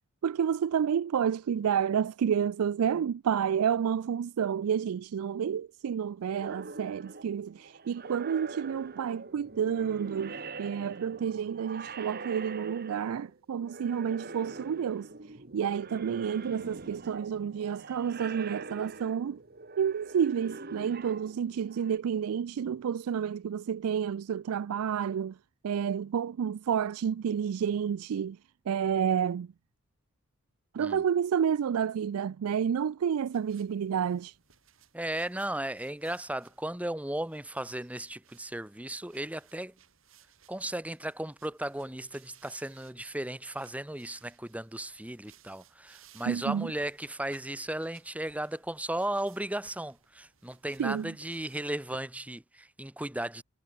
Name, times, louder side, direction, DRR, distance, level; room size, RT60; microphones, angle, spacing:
voice 1, 0.2-15.1 15.5-19.4 19.8-25.4 25.6-28.4 28.7-29.5 30.7-34.3 46.3-46.7 50.8-51.1, right 8 dB, 85° right, 0.4 m, -30 dB
sound 1, 6.3-13.4 13.6-22.0, right 3 dB, 45° right, 1.5 m, -44 dB
sound 2, 33.3-52.0, right 6 dB, 65° right, 5.6 m, -62 dB
voice 2, 34.9-39.7 40.5-53.4, right 1 dB, 5° right, 0.9 m, -36 dB
head